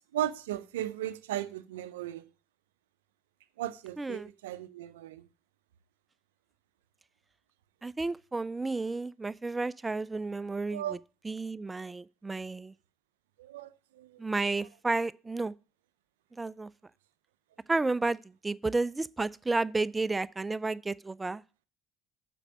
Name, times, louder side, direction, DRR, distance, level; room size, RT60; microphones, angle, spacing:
voice 1, 0.1-2.2 3.6-5.3 10.7-11.0 13.4-14.2, right 12 dB, 90° right, 0.4 m, -36 dB
voice 2, 4.0-4.3 7.8-11.0 11.2-12.7 14.2-15.5 16.4-16.7 17.7-21.4, right 3 dB, 20° right, 0.3 m, -32 dB
6.6 x 5.2 x 6.2 m
hypercardioid pair, 65°, 0 cm